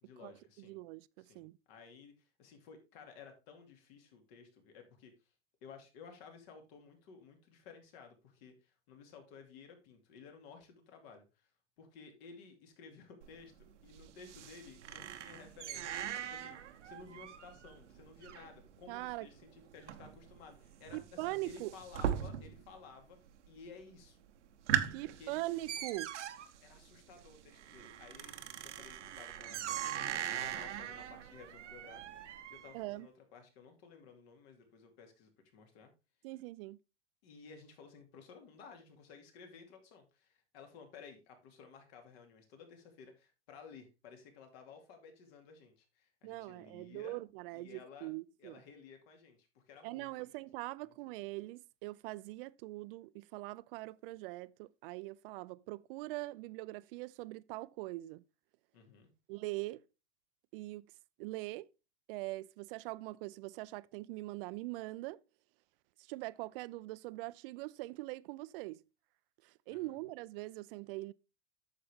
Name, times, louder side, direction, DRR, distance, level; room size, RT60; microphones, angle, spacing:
voice 1, 0.0-0.8 1.2-1.4 1.7-5.1 5.6-11.5 11.8-23.2 23.5-24.2 24.9-25.4 26.6-28.4 28.6-35.9 37.2-47.2 47.5-48.1 48.4-50.1 50.8-50.9 58.7-59.1 69.7-70.0, left 5 dB, 60° left, 2.6 m, -55 dB
voice 2, 0.6-1.6 18.9-19.3 20.9-21.7 24.9-26.1 32.7-33.1 36.2-36.8 46.2-48.6 49.8-58.2 59.3-59.8 60.5-60.9 61.2-61.7 62.1-65.2 66.0-68.8 69.4-71.1, right 20 dB, 50° right, 0.5 m, -42 dB
sound 1, 13.2-22.8 23.0-23.6 24.0-24.1 24.5-32.8, right 9 dB, 85° right, 1.0 m, -40 dB
8.9 x 6.7 x 3.5 m
hypercardioid pair, 110°, 35 cm